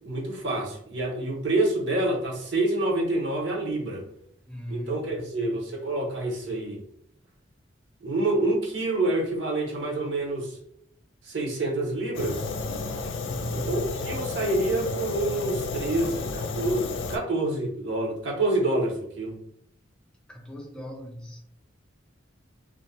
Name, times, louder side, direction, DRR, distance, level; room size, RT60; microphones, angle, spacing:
voice 1, 0.0-4.0 4.7-6.8 8.0-10.6 11.2-12.4 13.5-19.4, right 2 dB, 70° right, 0.7 m, -27 dB
voice 2, 4.5-5.3 13.2-13.9 20.3-21.4, equal, 5° left, 0.3 m, -37 dB
Fire, 12.1-17.2, left 3 dB, 85° left, 0.4 m, -32 dB
2.5 x 2.0 x 2.7 m
head